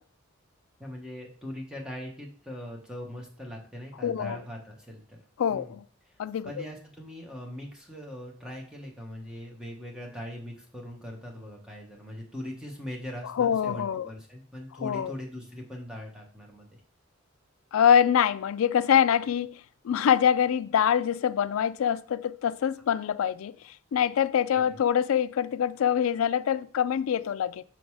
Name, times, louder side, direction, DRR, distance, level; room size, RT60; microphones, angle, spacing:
voice 1, 0.8-5.2 5.5-5.8 6.0-6.2 6.4-16.8 24.5-24.8, equal, 5° right, 1.3 m, -41 dB
voice 2, 4.0-4.4 5.4-5.8 6.2-6.5 13.4-14.1 14.8-15.1 17.7-19.6 19.8-23.5 23.9-27.6, left 8 dB, 85° left, 0.3 m, -24 dB
5.9 x 3.9 x 4.7 m
head